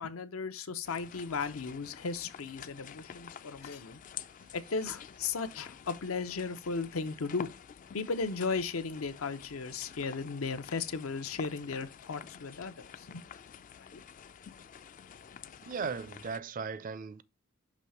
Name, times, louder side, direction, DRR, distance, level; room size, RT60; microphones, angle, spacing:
voice 1, 0.0-4.0 4.5-7.5 7.9-13.2 13.8-14.0, left 4 dB, 75° left, 0.7 m, -36 dB
sound 1, 0.8-16.4, left 8 dB, 40° left, 0.3 m, -49 dB
voice 2, 15.6-17.2, right 5 dB, 40° right, 0.5 m, -37 dB
6.2 x 3.1 x 5.5 m
head